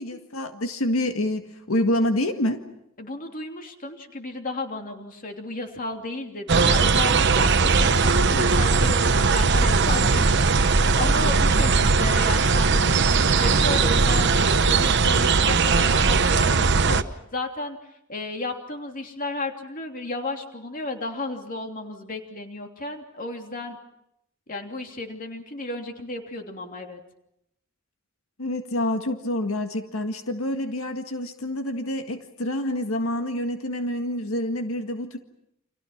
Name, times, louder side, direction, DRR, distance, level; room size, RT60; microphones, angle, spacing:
voice 1, 0.0-2.6 28.4-35.2, left 1 dB, 90° left, 6 dB, 1.8 m, -27 dB
voice 2, 3.0-17.8 18.1-23.8 24.5-27.0, left 2 dB, 40° left, 4 dB, 3.0 m, -33 dB
sound 1, 6.5-17.0, right 4 dB, 60° right, 1.0 m, -19 dB
29.5 x 26.5 x 5.9 m, 0.78 s
head